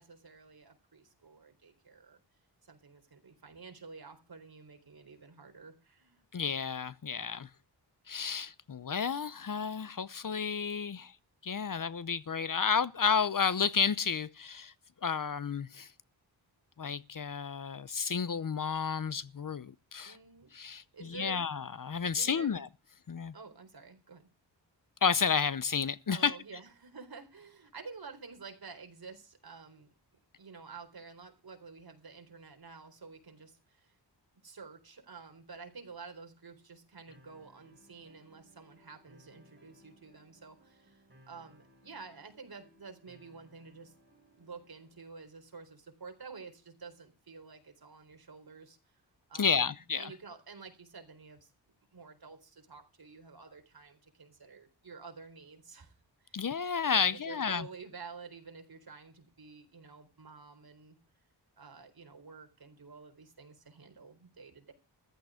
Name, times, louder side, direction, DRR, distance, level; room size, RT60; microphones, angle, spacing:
voice 1, 0.0-2.2 2.6-6.2 20.0-21.4 22.1-22.5 23.3-24.3 26.1-29.9 30.4-33.9 34.4-43.9 44.4-49.0 49.3-51.5 51.9-56.4 56.9-61.0 61.6-64.7, right 4 dB, 55° right, 4.2 m, -50 dB
voice 2, 6.3-7.5 8.1-11.1 11.4-14.7 15.0-15.9 16.8-20.2 20.5-20.8 21.1-22.7 23.1-23.3 25.0-26.3 49.3-50.1 56.3-57.7, left 6 dB, 50° left, 0.8 m, -31 dB
sound 1, 37.1-45.1, equal, 25° right, 6.1 m, -63 dB
14.5 x 13.0 x 5.0 m
wide cardioid pair, 100°, 43 cm